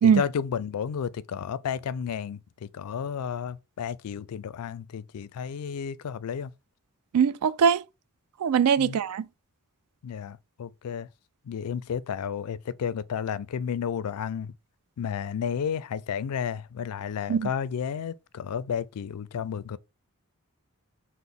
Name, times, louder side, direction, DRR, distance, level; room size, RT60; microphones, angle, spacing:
voice 1, 0.0-6.5 8.8-9.0 10.0-11.1 11.5-14.5 15.0-19.8, left 7 dB, 80° left, 0.4 m, -32 dB
voice 2, 7.1-7.8 8.4-9.3 17.3-17.5, right 7 dB, 80° right, 0.4 m, -21 dB
6.0 x 2.0 x 3.5 m
head